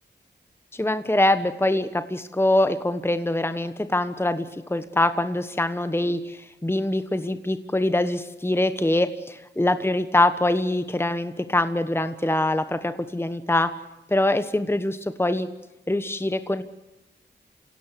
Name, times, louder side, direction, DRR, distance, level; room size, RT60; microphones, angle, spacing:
voice 1, 0.7-13.7 14.1-15.5 15.9-16.6, left 1 dB, 10° left, 11 dB, 1.2 m, -24 dB
26.5 x 17.0 x 8.3 m, 1.0 s
cardioid pair, 55°, 19 cm